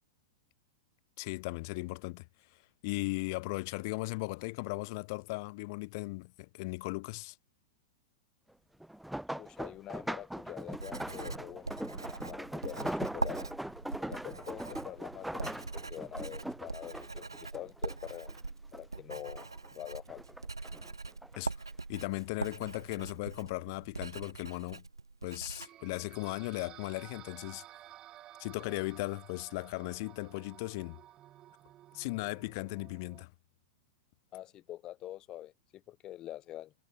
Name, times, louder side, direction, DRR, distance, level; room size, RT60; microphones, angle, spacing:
voice 1, 1.2-2.3 2.8-7.3 21.4-21.5 21.9-24.8 25.2-27.6 28.4-31.0 31.9-33.3, left 26 dB, 50° left, 0.6 m, -37 dB
sound 1, 8.8-18.4 18.7-19.7 20.1-21.4 22.2-22.5 22.9-23.0, right 1 dB, ahead, 0.4 m, -41 dB
voice 2, 9.3-11.8 12.2-13.4 14.0-18.3 18.7-19.5 19.7-20.2 34.3-36.7, left 13 dB, 35° left, 1.7 m, -45 dB
Writing, 10.6-25.7, right 3 dB, 90° right, 0.8 m, -42 dB
sound 2, 25.6-33.2, right 13 dB, 30° right, 4.4 m, -54 dB
figure-of-eight pair, 100°, 2 cm